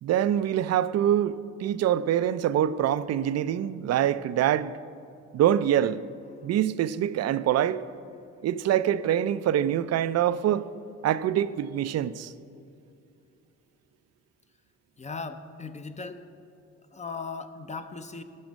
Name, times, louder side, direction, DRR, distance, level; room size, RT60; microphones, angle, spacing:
voice 1, 0.0-4.7 5.3-6.0 6.4-7.8 8.4-10.7 11.0-12.3, right 10 dB, 60° right, 0.4 m, -25 dB
voice 2, 15.0-16.2 16.9-18.2, left 4 dB, 25° left, 0.6 m, -38 dB
12.0 x 7.1 x 5.2 m
cardioid pair, 90°, 30 cm